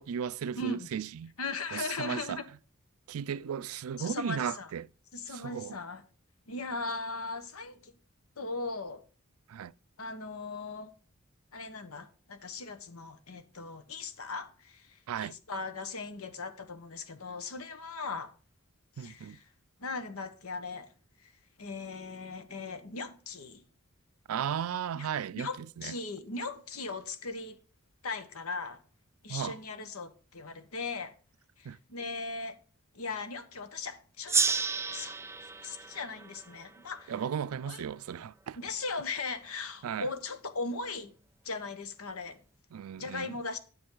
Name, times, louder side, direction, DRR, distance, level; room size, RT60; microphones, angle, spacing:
voice 1, 0.0-1.3 1.7-2.4 3.1-4.9 5.3-5.8 9.5-9.7 15.1-15.4 19.0-19.4 24.3-25.9 29.3-29.6 31.6-31.8 37.1-38.6 39.8-40.1 42.7-43.4, right 8 dB, 85° right, 0.4 m, -35 dB
voice 2, 0.6-0.9 1.4-2.4 4.0-4.7 5.1-6.0 6.5-7.9 8.4-9.0 10.0-10.9 11.5-18.3 19.0-19.4 19.8-20.9 21.2-21.3 21.6-23.6 24.9-27.6 28.0-28.8 29.2-31.1 31.6-32.6 32.9-34.6 34.9-35.2 35.6-37.1 37.7-37.8 38.6-41.1 41.4-42.4 43.0-43.6, left 3 dB, 85° left, 1.2 m, -38 dB
Gong, 34.3-37.4, right 5 dB, 10° right, 0.4 m, -32 dB
10.0 x 7.3 x 3.8 m
head